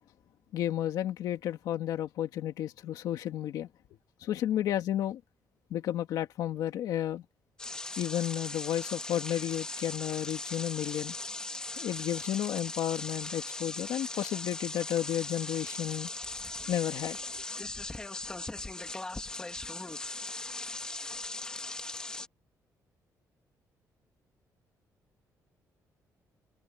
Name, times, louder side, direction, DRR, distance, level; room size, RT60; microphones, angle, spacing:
voice 1, 0.5-3.7 4.2-5.2 5.7-7.2 8.0-11.2 11.8-16.1 16.7-17.4, left 11 dB, 80° left, 2.2 m, -32 dB
sound 1, 7.6-22.3, left 2 dB, 10° left, 2.1 m, -39 dB
cardioid pair, 180°, 6 cm